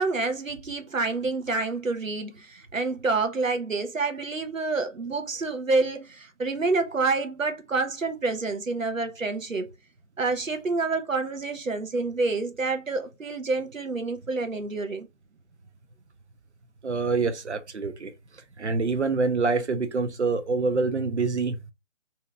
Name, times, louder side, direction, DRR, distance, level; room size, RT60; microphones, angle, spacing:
voice 1, 0.0-9.7 10.2-15.1, right 3 dB, 90° right, 0.8 m, -28 dB
voice 2, 16.8-18.1 18.6-21.6, right 4 dB, 60° right, 0.6 m, -26 dB
2.8 x 2.3 x 3.8 m
figure-of-eight pair, 155°, 39 cm